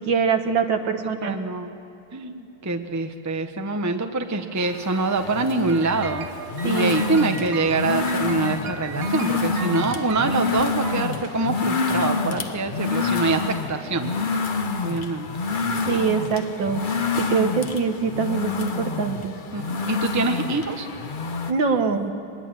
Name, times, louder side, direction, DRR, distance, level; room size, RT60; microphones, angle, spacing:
voice 1, 0.0-1.4 6.6-6.9 15.9-16.9 17.2-19.3 21.5-22.1, right 5 dB, 70° right, 6 dB, 2.1 m, -23 dB
voice 2, 1.0-1.7 2.1-6.3 6.6-14.1 14.4-15.3 19.5-20.9, right 3 dB, 10° right, 6 dB, 0.9 m, -25 dB
sound 1, 4.6-21.5, left 4 dB, 40° left, 0.7 m, -27 dB
sound 2, 5.7-11.7, right 6 dB, 50° right, 1.5 m, -37 dB
23.5 x 20.0 x 9.1 m, 2.8 s
omnidirectional pair, 2.2 m